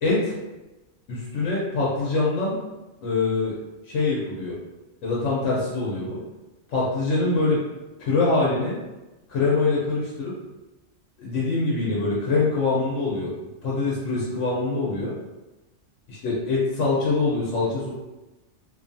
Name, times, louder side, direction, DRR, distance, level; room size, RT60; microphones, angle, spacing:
voice 1, 0.0-0.3 1.1-2.6 3.0-3.6 3.9-4.5 5.0-6.2 6.7-7.6 8.0-8.8 9.3-10.3 11.2-13.3 13.6-15.1 16.2-17.9, left 3 dB, 80° left, -6 dB, 1.0 m, -24 dB
2.7 x 2.3 x 2.6 m, 1.1 s
omnidirectional pair, 1.2 m